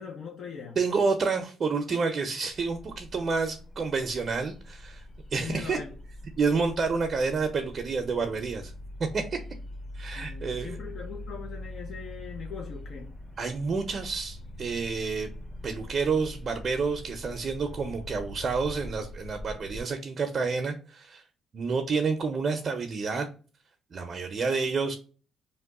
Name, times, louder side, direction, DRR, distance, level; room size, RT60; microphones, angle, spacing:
voice 1, 0.0-0.8 5.4-5.9 10.2-13.1, left 6 dB, 65° left, 0.5 m, -41 dB
voice 2, 0.8-5.0 5.3-5.8 6.4-8.7 9.0-9.4 9.9-10.8 13.4-15.3 15.6-21.2 21.5-23.3 23.9-24.9, right 4 dB, 50° right, 0.5 m, -29 dB
sound 1, 2.5-19.8, left 1 dB, 45° left, 1.2 m, -43 dB
2.9 x 2.1 x 3.5 m
cardioid pair, 90°, 0 cm